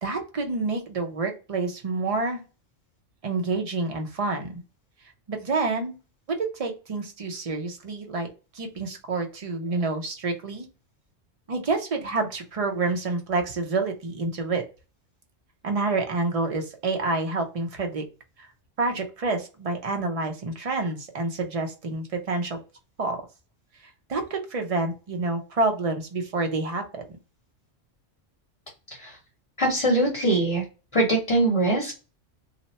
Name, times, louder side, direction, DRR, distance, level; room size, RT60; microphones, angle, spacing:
voice 1, 0.0-2.4 3.2-4.6 5.3-6.0 6.3-8.3 8.5-10.7 11.5-14.6 15.6-18.0 18.4-18.5 18.8-22.6 23.0-23.2 24.1-27.0, right 3 dB, 35° right, 4 dB, 0.6 m, -28 dB
voice 2, 29.6-30.6 30.9-32.0, right 2 dB, 30° left, -2 dB, 0.9 m, -22 dB
2.8 x 2.2 x 4.0 m, 0.32 s
omnidirectional pair, 1.2 m